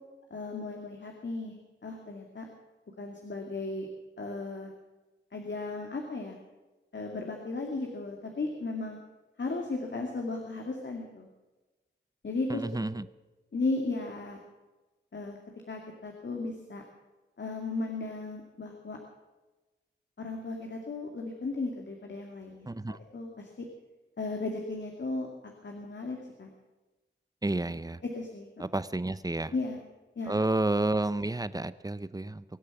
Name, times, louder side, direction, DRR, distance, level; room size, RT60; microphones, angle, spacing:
voice 1, 0.3-1.6 1.8-2.4 3.0-3.9 4.2-4.7 5.3-6.4 6.9-9.0 9.4-11.3 12.2-12.8 13.5-14.4 15.1-15.4 15.7-16.8 17.4-19.0 20.2-23.7 24.2-25.3 25.6-26.5 28.0-28.7 29.5-29.8 30.2-30.3, left 3 dB, 65° left, 2 dB, 2.5 m, -35 dB
voice 2, 12.5-13.0 22.7-23.0 27.4-28.0 28.6-29.5 30.3-32.4, right 2 dB, 20° right, 15 dB, 0.8 m, -30 dB
23.0 x 8.6 x 7.2 m, 1.2 s
wide cardioid pair, 60°, 20 cm